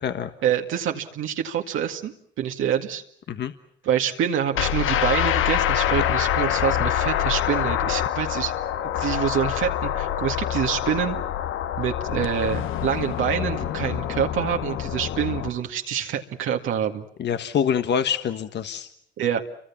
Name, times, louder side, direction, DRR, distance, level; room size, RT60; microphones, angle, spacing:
voice 1, 0.4-3.0 3.8-8.5 8.8-11.2 11.8-17.0 19.2-19.4, right 9 dB, 80° right, 3 dB, 2.1 m, -26 dB
sound 1, 4.5-15.5, left 11 dB, 85° left, 1.2 m, -25 dB
voice 2, 17.2-18.9, left 8 dB, 60° left, 9 dB, 1.4 m, -25 dB
29.0 x 25.0 x 7.3 m, 0.68 s
cardioid pair, 90°, 20 cm